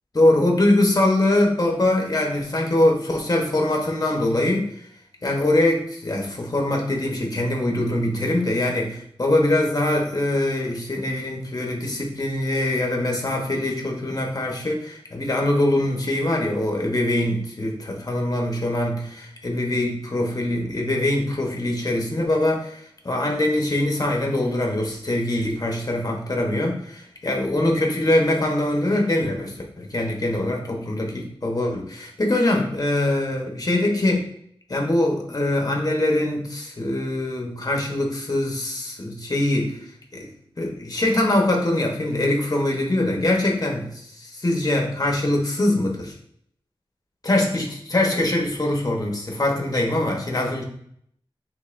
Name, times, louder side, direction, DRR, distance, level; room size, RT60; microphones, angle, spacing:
voice 1, 0.1-4.7 5.2-34.3 34.7-39.8 40.1-40.3 40.6-46.1 47.2-50.6, left 1 dB, 35° left, 0 dB, 1.0 m, -23 dB
5.3 x 3.6 x 2.6 m, 0.68 s
wide cardioid pair, 75°, 10 cm